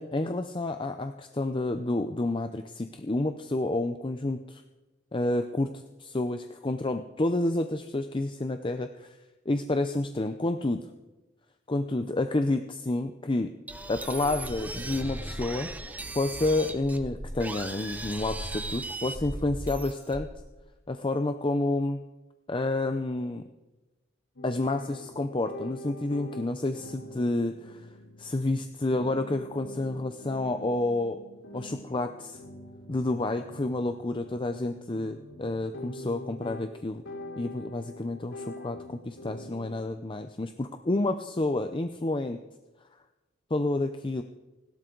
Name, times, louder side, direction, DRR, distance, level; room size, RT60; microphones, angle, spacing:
voice 1, 0.0-4.6 5.1-9.2 9.5-10.9 11.7-13.5 13.9-15.7 16.1-20.3 20.9-22.0 22.5-23.4 24.4-27.9 28.2-31.2 31.5-32.4 32.9-37.0 37.4-42.4 43.5-44.2, left 2 dB, 25° left, 8 dB, 0.6 m, -29 dB
sound 1, 13.7-20.5, right 1 dB, 10° right, 0.9 m, -37 dB
sound 2, 24.4-39.8, left 1 dB, 70° left, 3.7 m, -44 dB
29.5 x 12.0 x 3.9 m, 1.1 s
head